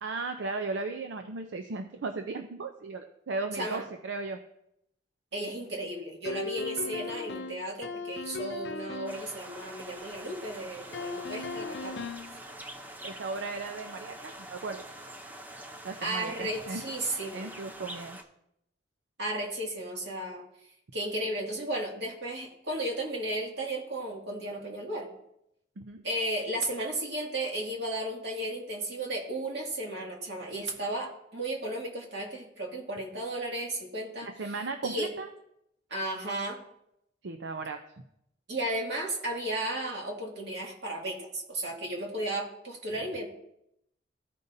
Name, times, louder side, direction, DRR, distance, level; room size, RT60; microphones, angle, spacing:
voice 1, 0.0-4.4 13.0-14.8 15.8-16.8 17.3-18.2 25.8-26.1 34.2-35.3 37.2-37.8, right 3 dB, 90° right, 6 dB, 0.6 m, -36 dB
voice 2, 5.3-12.0 16.0-17.5 19.2-20.4 20.9-25.1 26.0-34.5 34.8-35.1 35.9-36.6 38.5-43.3, right 1 dB, 70° right, -2 dB, 2.1 m, -34 dB
sound 1, 6.3-9.3 10.9-12.4, left 3 dB, 70° left, 0.5 m, -37 dB
sound 2, 9.1-18.2, right 1 dB, 10° right, 0.6 m, -45 dB
14.5 x 5.2 x 2.7 m, 0.78 s
head